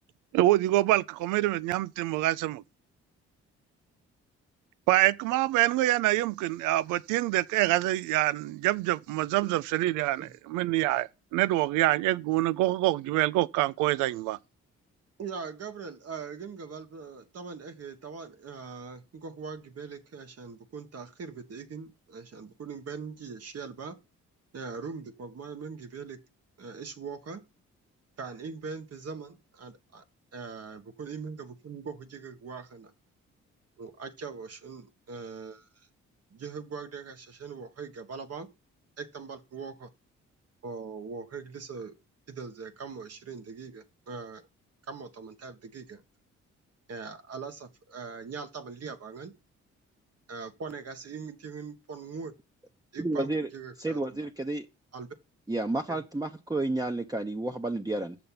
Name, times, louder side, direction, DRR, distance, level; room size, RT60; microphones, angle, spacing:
voice 1, 0.3-2.6 4.9-14.4, right 16 dB, 90° right, 0.5 m, -26 dB
voice 2, 15.2-24.0 24.5-26.2 26.6-27.4 28.2-30.0 30.3-32.9 33.8-35.9 36.3-38.5 39.0-39.9 40.6-41.9 42.3-44.4 44.9-46.0 46.9-49.3 50.3-52.3 52.9-54.3 54.9-55.1 55.9-56.0, right 5 dB, 55° right, 1.6 m, -41 dB
voice 3, 53.0-53.5 53.8-54.7 55.5-58.2, right 2 dB, 10° right, 1.0 m, -31 dB
6.9 x 6.8 x 5.8 m
supercardioid pair, 60°, 30 cm